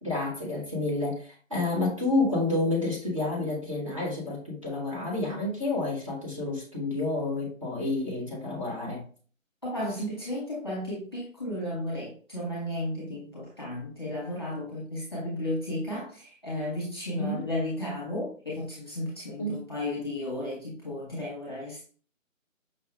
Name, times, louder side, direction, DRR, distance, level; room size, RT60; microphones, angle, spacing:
voice 1, 0.0-9.1 17.2-17.4 19.4-19.6, left 2 dB, 25° right, -5 dB, 1.1 m, -29 dB
voice 2, 9.6-21.9, left 1 dB, 20° left, -7 dB, 1.1 m, -34 dB
5.6 x 2.3 x 3.2 m, 0.41 s
figure-of-eight pair, 180°, 40 cm